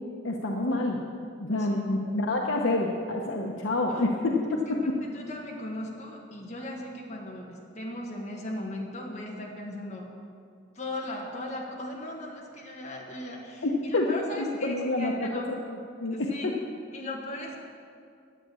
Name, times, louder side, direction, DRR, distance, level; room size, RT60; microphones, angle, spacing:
voice 1, 0.2-1.0 1.4-4.3 4.7-5.0 13.6-15.4 16.0-16.6, left 2 dB, 85° left, 0 dB, 0.9 m, -28 dB
voice 2, 3.9-4.3 4.7-10.1 10.7-15.5 16.1-16.5 16.9-17.6, left 1 dB, 35° left, -2 dB, 1.5 m, -38 dB
11.5 x 8.5 x 7.0 m, 2.3 s
head